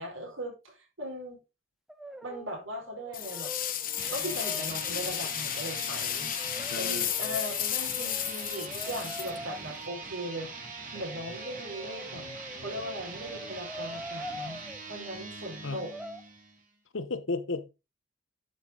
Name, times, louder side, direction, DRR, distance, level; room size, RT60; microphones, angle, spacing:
voice 1, 0.0-1.4 2.2-3.8 4.1-6.3 6.8-10.5 10.9-12.2 12.6-14.6 14.9-15.9, equal, 75° right, 4.6 m, -39 dB
Brass instrument, 1.9-2.6 2.9-5.4 6.4-9.6 10.9-14.8 15.8-16.2, equal, ahead, 0.6 m, -44 dB
sound 1, 3.1-9.9, left 11 dB, 45° left, 0.9 m, -33 dB
sound 2, 3.9-16.6, right 3 dB, 40° right, 3.1 m, -42 dB
voice 2, 6.7-7.1 15.6-15.8 16.9-17.7, left 3 dB, 70° left, 0.9 m, -33 dB
11.0 x 5.3 x 3.9 m
head